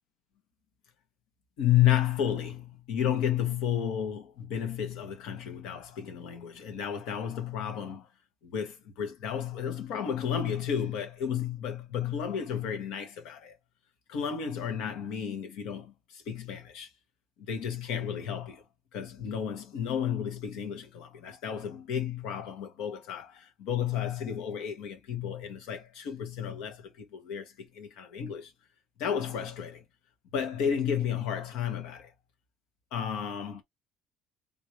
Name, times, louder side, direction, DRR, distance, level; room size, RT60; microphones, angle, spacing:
voice 1, 1.6-8.1 8.4-13.5 14.1-16.9 17.5-18.6 18.9-28.5 29.0-29.8 30.3-32.1 32.9-33.6, left 9 dB, 90° left, 1.4 m, -32 dB
3.6 x 2.9 x 3.0 m
cardioid pair, 145°, 0 cm